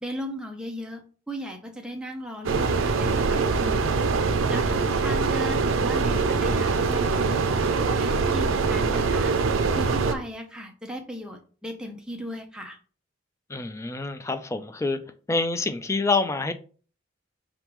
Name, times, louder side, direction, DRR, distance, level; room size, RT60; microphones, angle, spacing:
voice 1, 0.0-3.9 4.5-7.5 7.9-9.3 9.8-12.8, equal, 5° right, 3 dB, 0.7 m, -36 dB
sound 1, 2.4-10.1, right 4 dB, 85° right, 0.5 m, -23 dB
voice 2, 13.5-15.0 15.3-16.5, left 3 dB, 15° left, 9 dB, 0.3 m, -26 dB
4.8 x 3.5 x 3.0 m, 0.40 s
head